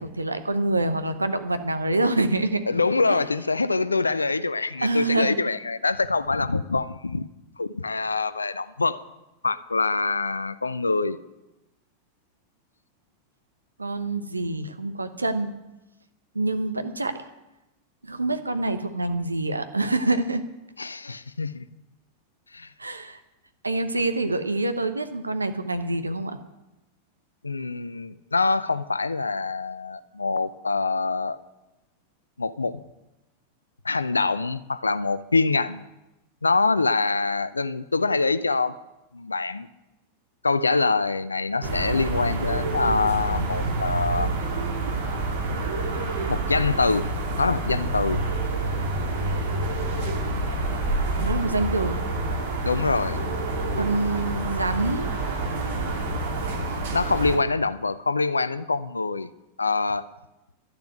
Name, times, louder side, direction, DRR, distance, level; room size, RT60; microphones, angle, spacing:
voice 1, 0.0-2.6 3.1-3.2 4.8-5.4 13.8-15.5 16.3-17.1 18.0-20.4 22.8-23.2 23.6-26.4 51.2-52.0 53.8-55.1, right 2 dB, 80° right, 0.9 m, -26 dB
voice 2, 2.7-7.3 7.6-9.0 9.4-11.2 20.8-21.6 22.5-22.7 27.4-31.4 32.4-32.8 33.8-35.9 36.4-38.8 39.1-39.7 40.4-44.3 46.3-47.1 47.4-48.2 52.6-53.2 56.9-59.3 59.6-60.1, left 3 dB, 80° left, 0.5 m, -25 dB
sound 1, 41.6-57.4, right 2 dB, 60° right, 2.3 m, -27 dB
12.0 x 6.9 x 9.5 m
figure-of-eight pair, 90°, 0 cm